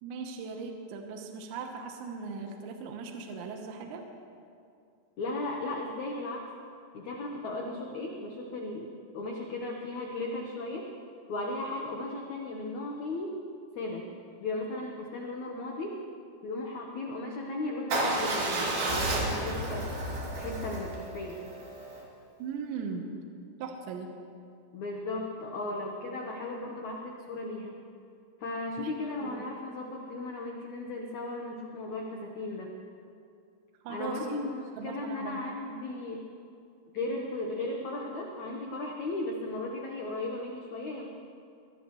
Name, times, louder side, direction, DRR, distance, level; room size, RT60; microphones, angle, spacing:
voice 1, 0.0-4.0 22.4-23.1 23.6-24.1 28.8-28.9 29.2-29.4 33.8-34.5 34.8-35.4, right 5 dB, 75° right, 3 dB, 3.3 m, -39 dB
voice 2, 5.2-6.5 6.9-10.9 11.3-13.4 13.7-14.1 14.4-16.0 16.4-20.0 20.3-21.4 24.7-27.8 28.4-32.7 33.9-36.2 36.9-41.1, left 2 dB, 80° left, 0 dB, 1.6 m, -36 dB
Motorcycle / Engine starting / Idling, 17.9-22.0, right 2 dB, 55° right, 4.4 m, -31 dB
24.0 x 19.0 x 3.2 m, 2.4 s
omnidirectional pair, 5.3 m